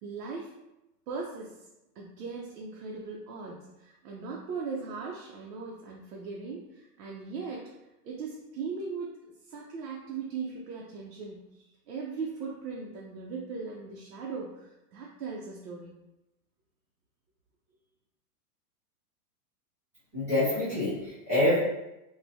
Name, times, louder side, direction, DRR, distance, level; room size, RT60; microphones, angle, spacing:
voice 1, 0.0-0.6 1.1-1.6 2.0-7.7 8.0-9.2 9.5-16.0, right 4 dB, 75° right, -3 dB, 0.7 m, -39 dB
voice 2, 20.1-21.6, left 1 dB, 10° right, -16 dB, 0.4 m, -26 dB
3.7 x 2.1 x 2.6 m, 0.93 s
supercardioid pair, 175°, 48 cm